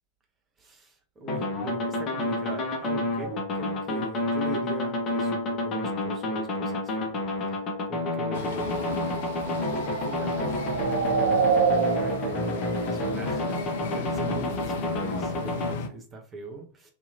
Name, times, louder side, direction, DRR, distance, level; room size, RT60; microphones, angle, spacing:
voice 1, 0.6-7.2 7.5-7.6 7.9-9.0 9.4-11.3 11.6-16.9, right 2 dB, 20° right, 2 dB, 0.7 m, -41 dB
sound 1, 1.3-15.7, left 1 dB, 30° left, 0.8 m, -30 dB
sound 2, 8.2-14.0, right 5 dB, 65° right, 0.4 m, -29 dB
sound 3, 8.3-15.9, left 4 dB, 55° left, 0.4 m, -36 dB
2.7 x 2.5 x 2.6 m, 0.41 s
figure-of-eight pair, 90°, 0 cm